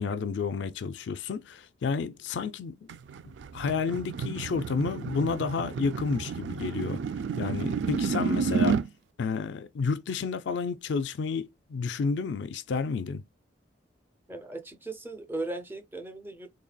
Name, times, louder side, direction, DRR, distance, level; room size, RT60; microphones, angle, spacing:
voice 1, 0.0-2.9 3.2-7.0 7.4-8.8 9.2-13.2, left 5 dB, 65° left, 0.4 m, -31 dB
sound 1, 2.9-8.9, right 6 dB, 65° right, 0.3 m, -31 dB
voice 2, 14.3-16.6, right 2 dB, 10° right, 0.5 m, -37 dB
3.9 x 3.2 x 2.2 m
head